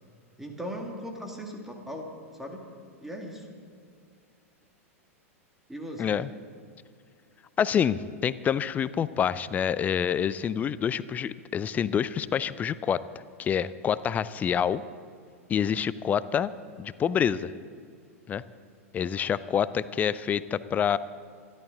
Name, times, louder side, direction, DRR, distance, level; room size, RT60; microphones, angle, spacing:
voice 1, 0.4-2.1 2.3-2.7 3.0-3.5 5.7-6.2, equal, 5° right, 1 dB, 2.1 m, -38 dB
voice 2, 7.6-13.0 13.4-14.8 15.5-16.5 16.8-17.5 18.3-18.4 18.9-21.0, left 8 dB, 20° left, 17 dB, 0.4 m, -27 dB
26.0 x 11.5 x 3.8 m, 2.3 s
figure-of-eight pair, 95°, 8 cm